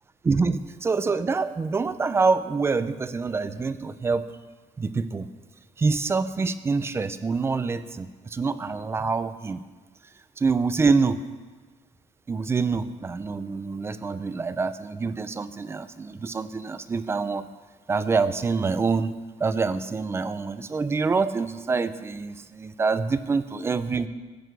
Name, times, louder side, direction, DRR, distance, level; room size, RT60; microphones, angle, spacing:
voice 1, 0.2-4.3 4.8-5.3 5.8-9.6 10.4-11.2 12.3-17.5 17.9-19.1 19.4-24.1, right 4 dB, 20° right, 13 dB, 0.5 m, -26 dB
13.5 x 8.1 x 8.1 m, 1.3 s
cardioid pair, 180°, 13 cm